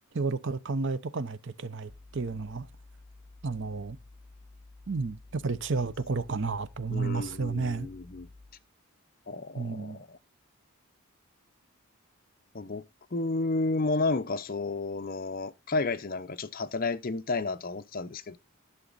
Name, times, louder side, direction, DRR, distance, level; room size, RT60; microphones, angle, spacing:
voice 1, 0.1-2.7 3.4-4.0 4.9-7.9 9.6-10.0, right 4 dB, 55° right, 0.7 m, -32 dB
sound 1, 1.9-8.7, left 2 dB, 20° right, 1.7 m, -53 dB
voice 2, 6.9-8.3 9.3-10.2 12.5-12.8 13.1-18.4, left 3 dB, 40° left, 0.6 m, -31 dB
11.5 x 7.1 x 3.9 m
head